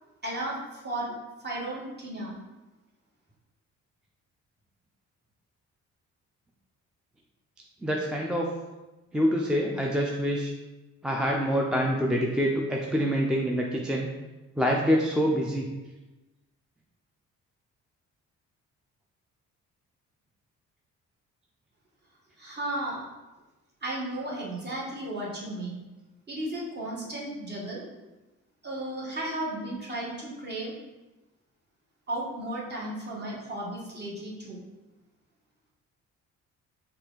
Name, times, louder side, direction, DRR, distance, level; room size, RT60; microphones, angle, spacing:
voice 1, 0.2-2.4 22.4-23.0 23.8-25.8 26.3-27.8 28.6-30.7 32.1-34.6, right 1 dB, 35° right, -4 dB, 1.3 m, -34 dB
voice 2, 7.8-8.5 9.1-10.5 11.0-14.1 14.6-15.7, equal, 5° right, -1 dB, 0.4 m, -26 dB
4.2 x 2.4 x 3.8 m, 1.1 s
cardioid pair, 90°, 30 cm